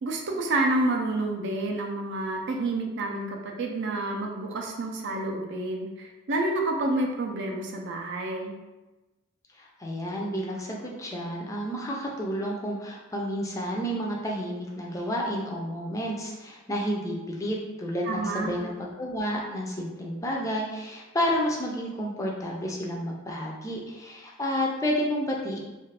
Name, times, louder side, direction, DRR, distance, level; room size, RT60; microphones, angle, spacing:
voice 1, 0.0-8.6 18.0-18.7, right 2 dB, 60° right, 1 dB, 0.4 m, -29 dB
voice 2, 9.8-25.6, equal, 15° left, -2 dB, 0.4 m, -30 dB
2.4 x 2.3 x 3.2 m, 1.1 s
head